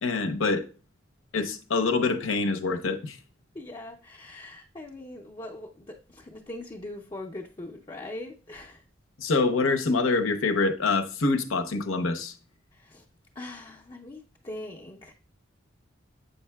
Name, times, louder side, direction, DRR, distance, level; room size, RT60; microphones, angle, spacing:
voice 1, 0.0-0.7 1.3-3.2 9.2-12.3, left 3 dB, 85° left, 0.8 m, -25 dB
voice 2, 3.5-8.8 12.7-13.0 13.4-15.1, left 1 dB, 25° left, 0.5 m, -41 dB
7.8 x 5.5 x 2.3 m
head